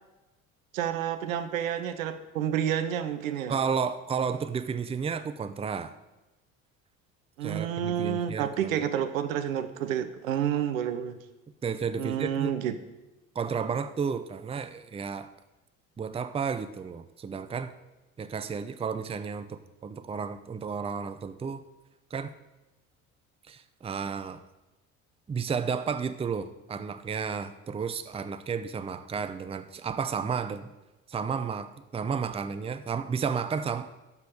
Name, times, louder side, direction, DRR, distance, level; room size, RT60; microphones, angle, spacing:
voice 1, 0.7-3.6 7.4-11.2 12.0-12.7, right 9 dB, 75° right, 10 dB, 0.9 m, -29 dB
voice 2, 3.5-5.9 7.4-8.8 11.6-12.5 13.3-15.3 16.0-17.7 18.2-21.6 22.1-22.3 23.5-24.4 25.3-30.7 31.1-33.9, right 6 dB, 15° right, 11 dB, 0.6 m, -32 dB
12.0 x 5.3 x 6.3 m, 1.0 s
figure-of-eight pair, 60°, 41 cm